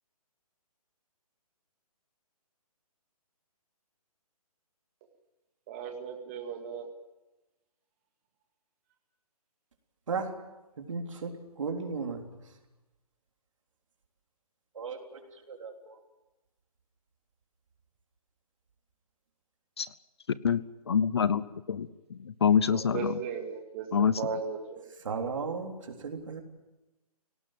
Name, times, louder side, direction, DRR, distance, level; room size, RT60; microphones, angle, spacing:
voice 1, 5.7-6.9 22.7-24.8, right 6 dB, 20° right, 3 dB, 2.1 m, -36 dB
voice 2, 10.8-12.2 14.7-16.0 25.0-26.4, right 5 dB, 55° right, 3 dB, 3.6 m, -35 dB
voice 3, 20.4-23.1 23.9-24.2, left 7 dB, 45° left, 17 dB, 0.7 m, -26 dB
23.5 x 18.0 x 9.0 m, 1.0 s
hypercardioid pair, 170°, 20 cm